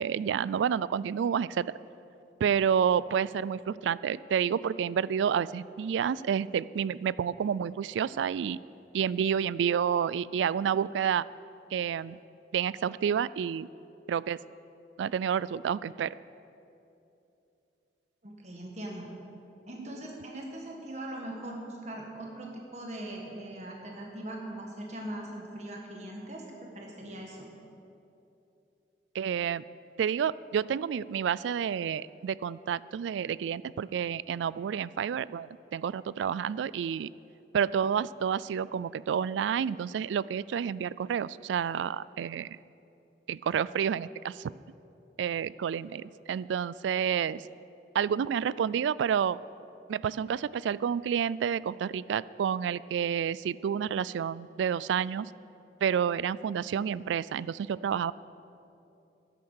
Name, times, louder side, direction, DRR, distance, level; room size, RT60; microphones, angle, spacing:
voice 1, 0.0-1.7 2.4-8.6 8.9-11.2 11.7-12.2 12.5-13.7 14.1-14.4 15.0-16.1 29.1-29.6 30.0-37.1 37.5-42.6 43.3-44.5 45.2-47.4 47.9-49.4 49.9-55.3 55.8-58.1, right 8 dB, 90° right, 19 dB, 0.3 m, -29 dB
voice 2, 18.2-19.1 19.7-27.4, right 1 dB, 40° right, 0 dB, 1.5 m, -40 dB
12.5 x 10.5 x 6.5 m, 2.8 s
head